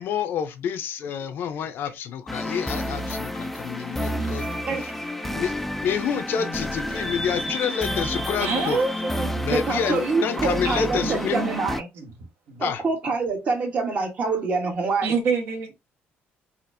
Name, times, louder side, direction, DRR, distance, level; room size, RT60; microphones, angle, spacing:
voice 1, 0.0-4.5 4.8-4.9 5.3-5.5 5.8-8.8 9.4-11.4 12.6-12.8, left 7 dB, 55° left, 0.6 m, -28 dB
sound 1, 2.3-11.8, left 1 dB, 5° left, 0.3 m, -30 dB
voice 2, 3.6-4.4 4.7-4.8 5.2-5.5 6.4-6.5 6.9-7.1 8.4-9.5 11.0-12.0 12.5-12.6 15.0-15.7, right 5 dB, 65° right, 1.2 m, -29 dB
voice 3, 9.5-11.9 12.6-15.1, right 4 dB, 35° right, 1.1 m, -26 dB
4.2 x 2.5 x 2.6 m
cardioid pair, 150°, 4 cm